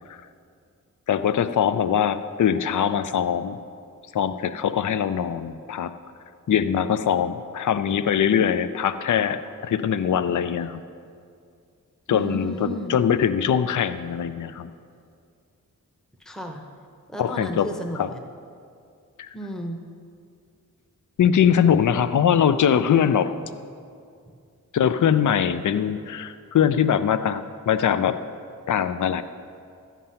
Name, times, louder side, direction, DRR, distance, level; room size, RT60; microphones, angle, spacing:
voice 1, 1.1-3.6 4.1-5.9 6.5-10.8 12.1-14.7 17.2-17.7 18.0-18.1 19.2-19.3 21.2-23.3 24.7-28.2 28.7-29.2, left 8 dB, 65° left, 12 dB, 0.5 m, -22 dB
voice 2, 12.1-13.0 16.2-16.7 17.1-18.2 19.3-19.8, right 1 dB, ahead, 3 dB, 0.8 m, -33 dB
13.5 x 9.2 x 5.6 m, 2.3 s
wide cardioid pair, 130°, 33 cm